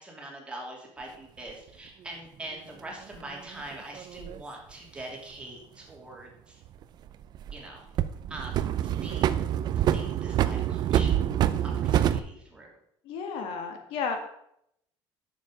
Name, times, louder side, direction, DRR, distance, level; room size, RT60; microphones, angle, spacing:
voice 1, 0.0-6.6 7.5-7.8 8.3-8.6 9.0-9.5 9.9-11.1 11.6-12.7, right 1 dB, 10° right, -1 dB, 2.7 m, -43 dB
sound 1, 1.5-1.6 3.1-4.4 6.6-7.6 8.0-12.2, right 11 dB, 50° right, 0.5 m, -26 dB
voice 2, 13.0-14.2, left 5 dB, 75° left, 6 dB, 1.7 m, -32 dB
10.0 x 7.0 x 5.0 m, 0.74 s
cardioid pair, 145°, 9 cm